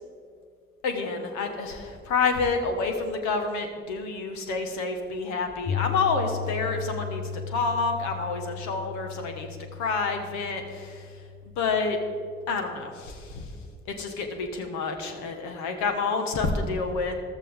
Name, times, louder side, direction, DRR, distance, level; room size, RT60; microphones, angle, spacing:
voice 1, 0.8-9.5 9.7-11.1 11.6-12.0 12.5-13.5 13.9-17.2, left 4 dB, 65° left, 5 dB, 1.5 m, -28 dB
Piano, 5.7-13.8, left 6 dB, 45° left, 1.4 m, -37 dB
14.5 x 12.0 x 3.7 m, 2.2 s
figure-of-eight pair, 40°, 30 cm